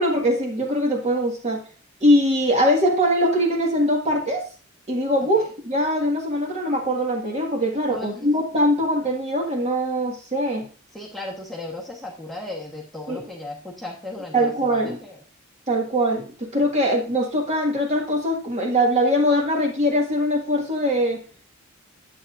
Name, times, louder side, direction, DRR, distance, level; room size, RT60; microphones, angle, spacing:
voice 1, 0.0-1.6 2.0-4.5 4.9-10.7 13.1-13.2 14.3-15.0 15.7-21.2, equal, 30° right, 2 dB, 1.7 m, -22 dB
voice 2, 7.9-8.3 10.9-15.2, left 2 dB, ahead, -3 dB, 1.2 m, -36 dB
10.0 x 8.0 x 2.5 m, 0.38 s
head